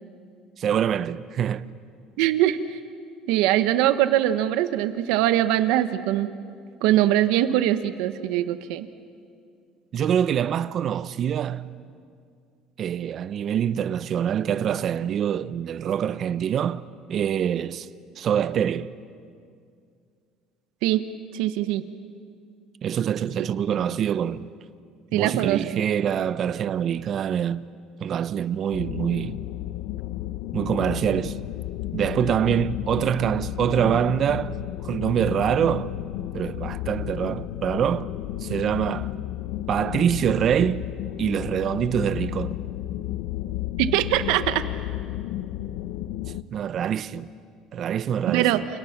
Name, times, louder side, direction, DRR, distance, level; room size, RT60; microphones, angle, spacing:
voice 1, 0.6-1.7 9.9-11.7 12.8-16.8 17.1-17.9 18.2-18.9 22.8-24.5 25.1-27.7 28.0-29.4 30.5-31.4 31.9-34.6 34.8-35.9 36.3-38.1 38.4-39.1 39.7-40.9 41.2-42.6 46.5-47.3 47.7-48.6, right 9 dB, 45° right, 0.8 m, -25 dB
voice 2, 2.2-2.8 3.3-6.3 6.8-8.9 20.8-21.0 21.3-21.8 25.1-25.8 43.8-44.6 48.3-48.7, right 13 dB, 85° right, 1.2 m, -22 dB
sound 1, 28.7-46.4, left 14 dB, 80° left, 0.7 m, -32 dB
29.5 x 29.0 x 6.0 m
cardioid pair, 120°, 0 cm